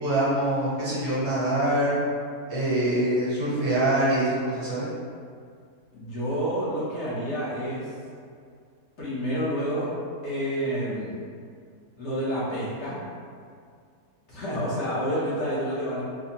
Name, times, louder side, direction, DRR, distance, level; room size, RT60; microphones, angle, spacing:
voice 1, 0.0-1.9 2.5-4.9, right 1 dB, 60° right, -9 dB, 1.3 m, -24 dB
voice 2, 5.9-7.9 9.0-9.9 10.2-11.2 12.0-13.0 14.3-16.0, equal, 55° left, -9 dB, 1.1 m, -29 dB
4.4 x 2.1 x 2.8 m, 2.2 s
omnidirectional pair, 1.6 m